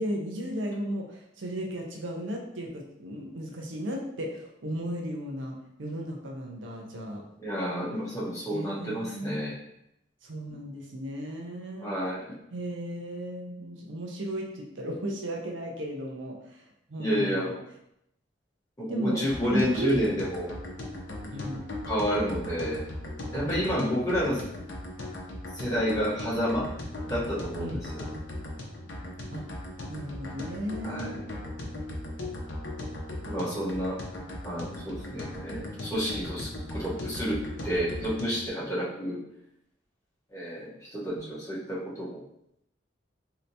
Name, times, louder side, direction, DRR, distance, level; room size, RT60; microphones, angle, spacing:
voice 1, 0.0-7.2 8.5-9.4 10.2-11.9 12.5-16.6 16.9-17.6 18.9-19.2 19.5-20.1 21.3-21.6 23.4-24.0 27.6-27.8 29.3-29.5 29.9-31.2 41.2-41.4, equal, 80° right, 1 dB, 0.6 m, -35 dB
voice 2, 7.4-9.6 11.8-12.3 17.0-17.5 18.8-20.5 21.8-22.8 23.3-24.4 25.5-26.7 27.1-27.8 30.8-31.1 33.2-34.0 34.4-39.2 40.3-42.2, equal, 15° left, -8 dB, 1.0 m, -30 dB
sound 1, 19.3-38.5, left 1 dB, 75° left, 0.6 m, -38 dB
3.2 x 2.8 x 2.7 m, 0.79 s
head